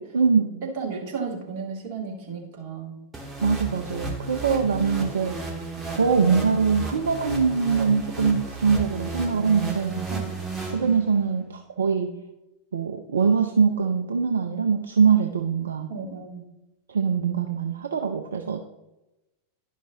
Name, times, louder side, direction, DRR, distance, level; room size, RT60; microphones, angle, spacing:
voice 1, 0.1-0.7 3.4-5.4 5.9-10.1 10.7-12.1 12.7-15.9 16.9-18.6, right 5 dB, 70° right, 5 dB, 0.5 m, -23 dB
voice 2, 0.7-3.0 10.1-10.4 15.9-16.4, right 5 dB, 45° right, -1 dB, 2.3 m, -33 dB
sound 1, 3.1-11.3, right 2 dB, 15° right, 1.6 m, -33 dB
11.0 x 5.4 x 3.7 m, 0.98 s
figure-of-eight pair, 90°, 0 cm